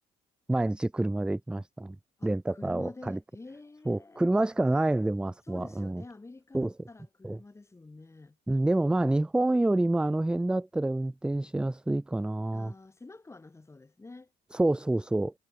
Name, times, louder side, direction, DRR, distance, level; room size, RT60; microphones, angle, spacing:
voice 1, 0.5-2.0 2.2-3.2 3.9-6.0 6.5-6.7 7.2-7.4 8.5-12.7 14.5-15.3, right 2 dB, 5° right, 0.4 m, -27 dB
voice 2, 2.2-4.2 5.4-8.4 12.5-14.3, left 3 dB, 15° left, 4.1 m, -48 dB
cardioid pair, 110°, 17 cm